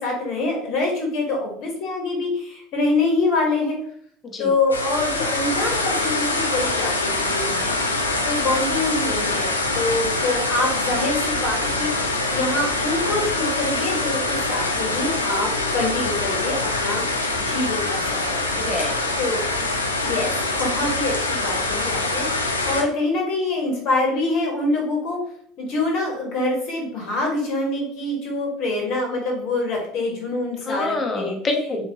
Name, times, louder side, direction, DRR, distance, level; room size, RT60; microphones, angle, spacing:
voice 1, 0.0-3.8 4.4-17.1 17.4-18.4 19.2-19.5 20.0-20.3 20.6-25.2 25.6-31.3, left 2 dB, 50° left, 0 dB, 0.9 m, -25 dB
voice 2, 4.2-4.5 18.6-19.1 30.6-31.9, left 2 dB, 25° left, 4 dB, 0.6 m, -26 dB
sound 1, 4.7-22.8, left 2 dB, 85° left, 0.4 m, -24 dB
3.6 x 2.6 x 2.6 m, 0.64 s
figure-of-eight pair, 70°, 0 cm